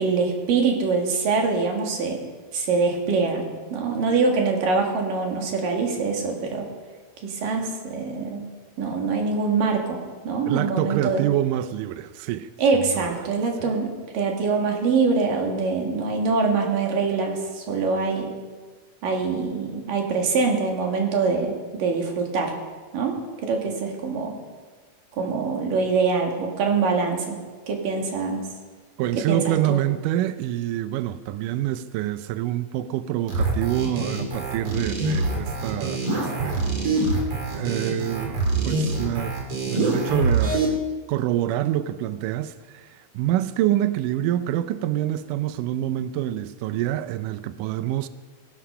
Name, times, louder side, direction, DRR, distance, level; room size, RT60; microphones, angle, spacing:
voice 1, 0.0-2.2 2.5-6.7 7.2-8.5 8.8-11.3 12.6-18.3 19.0-22.5 22.9-24.4 25.2-27.4 27.7-28.5 29.3-29.8, right 4 dB, 65° right, 1 dB, 3.6 m, -24 dB
voice 2, 10.5-12.5 12.9-13.3 13.6-13.8 29.0-36.7 37.5-39.3 39.7-40.8 41.1-48.1, right 13 dB, 85° right, 12 dB, 1.9 m, -26 dB
sound 1, 33.3-40.7, right 3 dB, 40° right, 3.0 m, -25 dB
19.5 x 12.0 x 5.6 m, 1.4 s
omnidirectional pair, 4.4 m